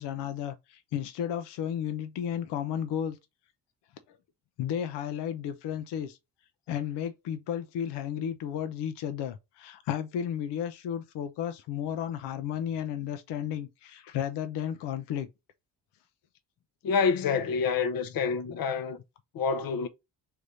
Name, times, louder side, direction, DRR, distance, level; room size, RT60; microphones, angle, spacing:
voice 1, 0.0-3.2 4.6-6.2 6.7-15.3, left 9 dB, 90° left, 0.9 m, -33 dB
voice 2, 16.8-19.0 19.3-19.9, left 5 dB, 60° left, 0.9 m, -27 dB
3.5 x 3.4 x 4.0 m
cardioid pair, 80°, 40 cm